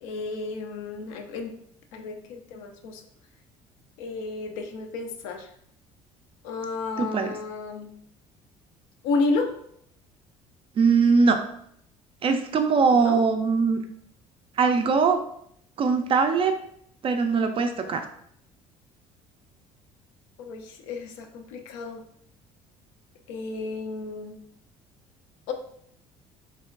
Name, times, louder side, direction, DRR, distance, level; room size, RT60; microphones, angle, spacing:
voice 1, 0.0-1.5 1.9-3.0 4.0-5.5 6.4-7.9 9.0-9.6 12.9-13.2 20.4-22.0 23.3-24.4 25.5-25.6, left 3 dB, 65° left, 5 dB, 0.4 m, -31 dB
voice 2, 7.0-7.3 10.8-11.4 12.2-13.8 14.6-15.2 15.8-16.5 17.0-18.0, right 5 dB, 30° right, 6 dB, 0.3 m, -21 dB
3.4 x 2.1 x 2.3 m, 0.70 s
figure-of-eight pair, 55°, 18 cm